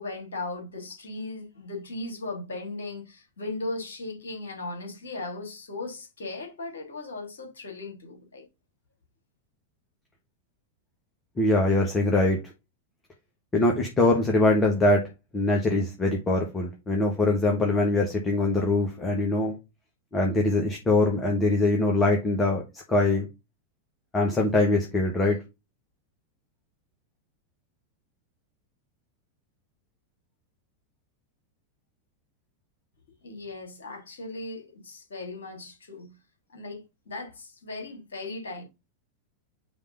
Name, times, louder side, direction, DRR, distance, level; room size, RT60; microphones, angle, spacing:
voice 1, 0.0-8.4 33.2-36.2 36.5-38.6, left 2 dB, 65° left, 2.8 m, -37 dB
voice 2, 11.4-12.4 13.5-15.0 15.3-19.5 20.1-23.3 24.1-25.4, left 2 dB, 20° left, 1.5 m, -23 dB
5.1 x 3.7 x 5.3 m
figure-of-eight pair, 90°, 0 cm